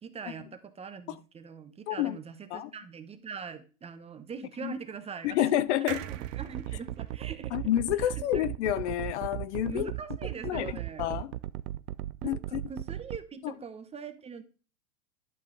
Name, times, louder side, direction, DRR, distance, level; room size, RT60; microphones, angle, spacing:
voice 1, 0.0-5.6 6.3-7.6 8.0-8.4 9.6-11.0 12.2-14.4, right 6 dB, 15° right, 0.8 m, -42 dB
voice 2, 1.9-2.2 2.5-2.7 4.6-4.7 5.2-6.0 7.5-9.9 10.4-11.3 12.2-12.6, left 13 dB, 50° left, 0.5 m, -29 dB
sound 1, 5.9-9.3 9.7-9.8 10.0-10.1, right 13 dB, 55° right, 1.0 m, -45 dB
sound 2, 6.1-13.2, right 15 dB, 80° right, 0.6 m, -37 dB
11.5 x 5.5 x 3.9 m
hypercardioid pair, 125°, 44 cm